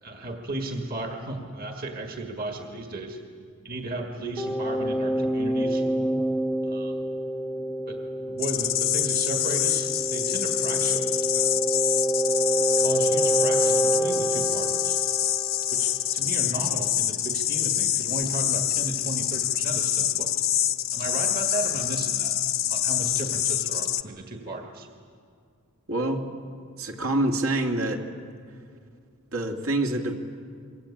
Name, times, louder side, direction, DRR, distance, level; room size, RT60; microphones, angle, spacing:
voice 1, 0.0-3.2 3.6-5.9 6.6-7.1 7.9-11.1 11.3-11.5 12.8-15.0 15.7-20.3 20.9-22.4 22.7-24.9, right 2 dB, 40° right, 3 dB, 1.9 m, -35 dB
sound 1, 4.4-16.0, right 1 dB, 5° left, 0.6 m, -27 dB
sound 2, 8.4-24.0, left 11 dB, 45° left, 0.8 m, -26 dB
voice 2, 25.9-26.4 26.8-28.0 29.3-30.2, right 1 dB, 70° right, 1 dB, 2.6 m, -26 dB
26.5 x 23.5 x 8.7 m, 2.2 s
head